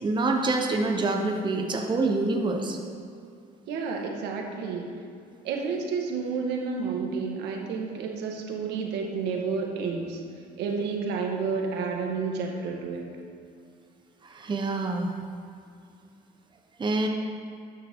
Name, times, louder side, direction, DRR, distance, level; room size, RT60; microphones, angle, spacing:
voice 1, 0.0-2.8 14.2-15.1 16.8-17.1, right 2 dB, 25° right, 2 dB, 1.1 m, -26 dB
voice 2, 3.7-4.9 5.4-10.2 10.6-13.1, right 5 dB, 85° right, 1 dB, 1.7 m, -30 dB
12.0 x 9.5 x 3.8 m, 2.4 s
cardioid pair, 110°, 17 cm